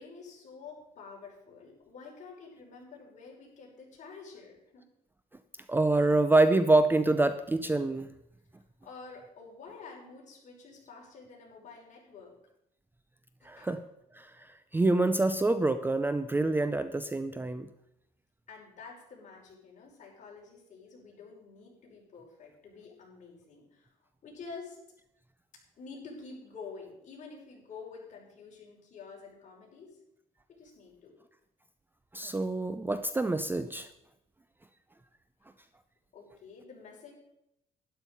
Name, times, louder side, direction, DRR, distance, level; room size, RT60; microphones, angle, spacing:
voice 1, 0.0-4.8 8.8-12.3 13.4-13.7 18.5-23.9 24.2-24.8 25.8-30.0 30.5-31.1 36.1-37.1, left 4 dB, 45° left, -2 dB, 6.1 m, -48 dB
voice 2, 5.7-8.1 13.4-13.8 14.1-17.7 32.1-33.9, right 2 dB, 10° right, 11 dB, 0.6 m, -26 dB
12.0 x 11.5 x 5.5 m, 0.81 s
cardioid pair, 110°, 17 cm